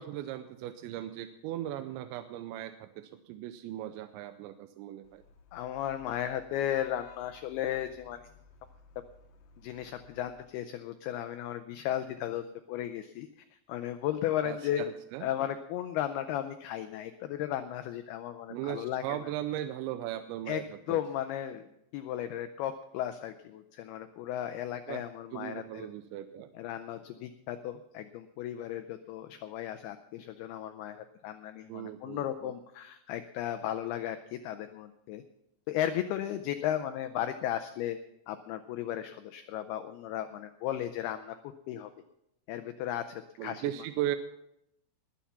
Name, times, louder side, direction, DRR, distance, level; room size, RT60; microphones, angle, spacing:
voice 1, 0.0-5.2 14.4-15.3 18.5-21.0 24.9-25.0 25.3-26.5 31.7-32.5 43.4-44.2, right 12 dB, 85° right, 9 dB, 2.9 m, -38 dB
Vehicle horn car horn honking / Traffic noise roadway noise, 5.0-10.4, left 5 dB, 70° left, 2.4 m, -58 dB
voice 2, 5.5-8.2 9.6-13.3 13.7-14.8 15.2-19.2 20.5-20.6 20.9-21.7 21.9-25.9 26.5-35.2 35.7-38.0 38.3-41.9 42.5-43.9, left 11 dB, 90° left, 10 dB, 2.2 m, -35 dB
20.5 x 7.2 x 5.7 m, 0.80 s
omnidirectional pair, 5.3 m